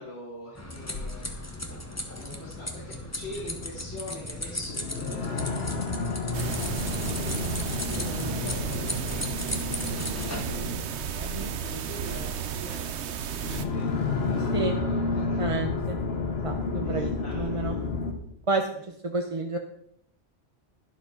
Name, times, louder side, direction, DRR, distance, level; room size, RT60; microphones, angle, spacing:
voice 1, 0.0-1.3 2.0-5.5 6.9-10.8 11.1-15.4 16.8-17.8, left 1 dB, 75° left, -8 dB, 3.6 m, -43 dB
sound 1, 0.6-10.4, left 1 dB, 15° left, 1.3 m, -36 dB
sound 2, 0.8-18.1, left 4 dB, 60° left, 1.5 m, -32 dB
sound 3, 6.3-13.7, right 8 dB, 70° right, 1.0 m, -33 dB
voice 2, 15.1-16.0 16.4-17.7 18.5-18.7 19.0-19.6, right 3 dB, 30° right, 4 dB, 0.7 m, -30 dB
12.0 x 11.5 x 3.8 m, 0.73 s
omnidirectional pair, 1.2 m